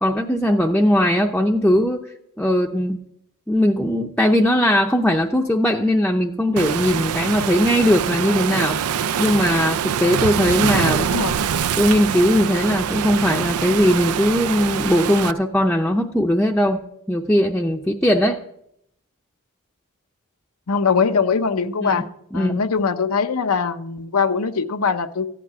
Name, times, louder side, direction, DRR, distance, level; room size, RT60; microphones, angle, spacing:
voice 1, 0.0-2.0 2.4-3.0 3.5-8.8 9.2-11.1 11.8-16.8 17.1-18.4 21.8-22.0 22.3-22.6, equal, 5° left, 0 dB, 0.6 m, -19 dB
Waves surf, 6.6-15.3, right 8 dB, 90° right, 0.4 m, -24 dB
voice 2, 20.7-22.1 22.3-25.3, left 5 dB, 90° left, 8 dB, 0.7 m, -21 dB
14.5 x 6.0 x 9.4 m, 0.77 s
head